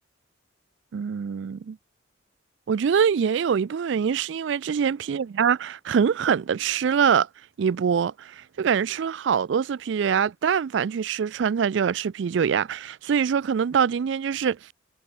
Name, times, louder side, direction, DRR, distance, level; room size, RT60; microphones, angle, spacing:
voice 1, 0.9-1.8 2.7-7.3 7.6-14.7, right 7 dB, 65° right, 0.4 m, -24 dB
head